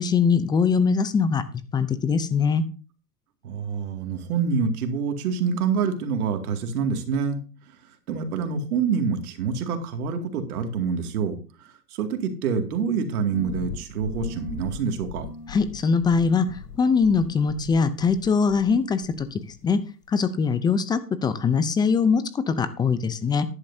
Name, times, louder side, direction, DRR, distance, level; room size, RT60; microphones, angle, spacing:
voice 1, 0.0-1.4 1.7-2.6 15.5-19.8 20.1-23.5, left 5 dB, 10° left, 13 dB, 0.4 m, -22 dB
voice 2, 3.4-7.4 8.1-15.3, right 6 dB, 65° right, 6 dB, 2.4 m, -26 dB
sound 1, 13.3-18.8 19.0-19.7, left 5 dB, 80° left, 6.9 m, -39 dB
13.0 x 11.0 x 2.7 m, 0.35 s
hypercardioid pair, 115°, 48 cm